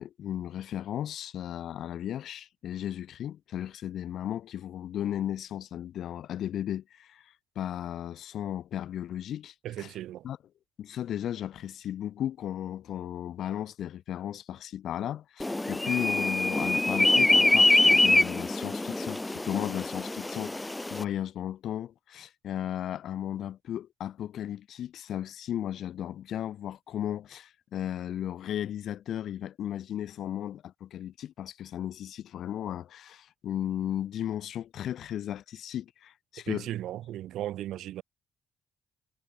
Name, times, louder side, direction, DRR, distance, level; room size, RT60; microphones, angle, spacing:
voice 1, 0.0-9.9 10.2-10.4 10.8-36.7, left 11 dB, 70° left, 1.6 m, -35 dB
voice 2, 9.6-10.3 36.5-38.0, right 13 dB, 80° right, 2.8 m, -36 dB
sound 1, 15.4-21.0, left 2 dB, 15° left, 0.6 m, -24 dB
cardioid pair, 90°, 0 cm